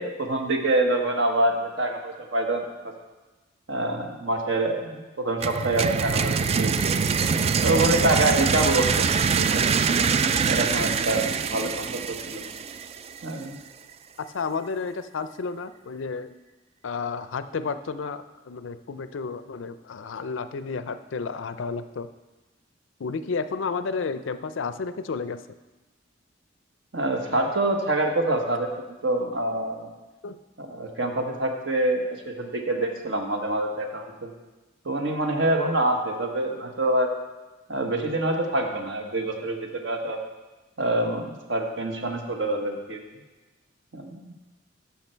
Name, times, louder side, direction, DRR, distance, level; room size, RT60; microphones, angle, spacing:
voice 1, 0.0-2.9 3.7-6.8 7.6-9.6 10.4-12.4 13.2-13.6 26.9-28.7 29.0-29.9 30.6-34.3 34.8-37.1 37.7-40.2 40.8-43.0 43.9-44.3, right 1 dB, 70° right, 3 dB, 1.3 m, -26 dB
sound 1, 5.4-13.2, right 6 dB, 35° right, 0.3 m, -24 dB
voice 2, 14.2-16.3 16.8-22.1 23.0-25.4 30.2-30.4 32.4-32.5, left 4 dB, 90° left, 12 dB, 0.5 m, -31 dB
14.5 x 5.8 x 4.5 m, 1.2 s
head